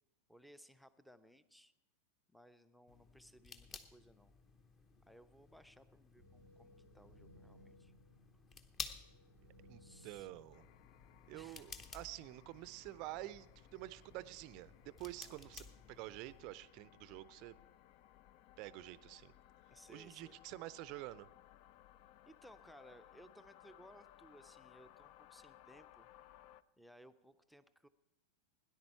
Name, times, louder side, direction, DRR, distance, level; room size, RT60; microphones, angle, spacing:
voice 1, 0.3-1.7 2.3-4.3 5.0-7.9 9.8-10.3 11.3-11.7 15.2-15.4 19.7-20.3 22.3-26.1 26.8-27.9, equal, ahead, 14 dB, 0.6 m, -61 dB
sound 1, 2.9-16.4, left 4 dB, 25° left, 0.9 m, -54 dB
sound 2, 6.2-11.3, equal, 80° left, 2.7 m, -63 dB
voice 2, 9.6-10.7 11.3-17.6 18.6-19.3 19.9-21.3, right 17 dB, 40° right, 18 dB, 0.5 m, -49 dB
sound 3, 10.5-26.6, left 13 dB, 45° left, 0.3 m, -63 dB
17.5 x 10.5 x 4.5 m, 0.95 s
figure-of-eight pair, 90°, 0 cm